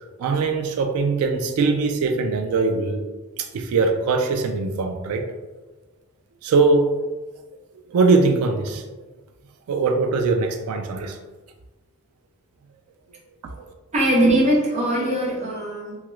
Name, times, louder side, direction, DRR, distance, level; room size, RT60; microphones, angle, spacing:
voice 1, 0.2-3.1 3.4-5.2 6.4-7.0 7.9-8.8 9.7-11.2 13.6-13.7, right 4 dB, 90° right, 4 dB, 0.3 m, -21 dB
voice 2, 13.9-16.0, right 1 dB, 30° right, -3 dB, 0.6 m, -20 dB
2.8 x 2.3 x 3.1 m, 1.2 s
head